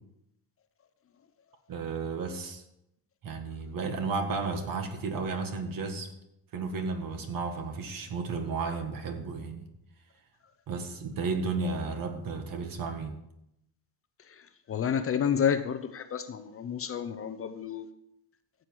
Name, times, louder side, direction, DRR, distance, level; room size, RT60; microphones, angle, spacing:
voice 1, 1.7-2.6 3.2-6.1 6.5-9.7 10.7-13.2, right 4 dB, 55° right, 6 dB, 1.9 m, -33 dB
voice 2, 14.3-17.9, left 8 dB, 35° left, 10 dB, 0.6 m, -30 dB
15.0 x 7.7 x 4.7 m, 0.82 s
cardioid pair, 145°, 42 cm